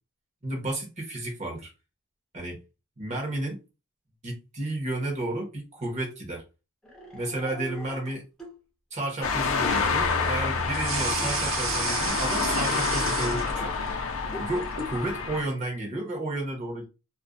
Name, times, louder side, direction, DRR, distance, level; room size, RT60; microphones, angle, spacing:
voice 1, 0.4-1.7 2.3-2.6 3.0-3.6 4.2-6.4 7.1-8.2 8.9-13.8 14.4-16.9, right 1 dB, 30° right, 0.8 m, -32 dB
sound 1, 6.8-8.6 9.0-9.1 10.7-10.9 12.1-12.3 13.5-13.7 14.2-14.5, equal, 5° left, 0.5 m, -42 dB
sound 2, 9.2-15.4, left 4 dB, 65° left, 0.4 m, -28 dB
sound 3, 10.7-13.9 14.3-15.0, right 4 dB, 65° right, 0.7 m, -31 dB
2.4 x 2.1 x 2.4 m
head